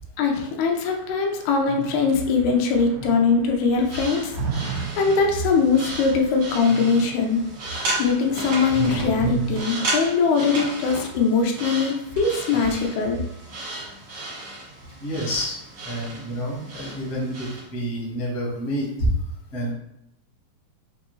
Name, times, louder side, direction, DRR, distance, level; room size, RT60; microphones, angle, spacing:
voice 1, 0.2-4.3 4.6-7.4 8.0-13.2, left 5 dB, 85° left, 2 dB, 2.6 m, -21 dB
sound 1, 0.9-9.6, right 7 dB, 90° right, 1.9 m, -34 dB
sound 2, 3.8-17.7, right 2 dB, 70° right, 0.9 m, -34 dB
voice 2, 15.0-15.6 15.8-19.1 19.5-19.7, equal, 65° left, -5 dB, 0.8 m, -28 dB
6.3 x 2.6 x 3.1 m, 0.82 s
omnidirectional pair, 4.4 m